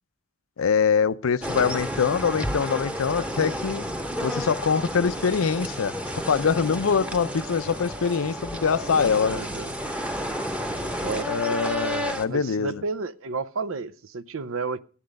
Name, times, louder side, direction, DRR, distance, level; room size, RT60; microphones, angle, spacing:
voice 1, 0.6-3.8 4.2-6.0 6.3-9.4 11.3-12.8, left 6 dB, 90° left, 0.5 m, -24 dB
sound 1, 1.4-12.2, equal, 5° right, 0.9 m, -31 dB
voice 2, 9.2-9.7 11.0-11.6 12.3-14.8, right 4 dB, 80° right, 0.6 m, -32 dB
14.5 x 10.0 x 5.2 m
head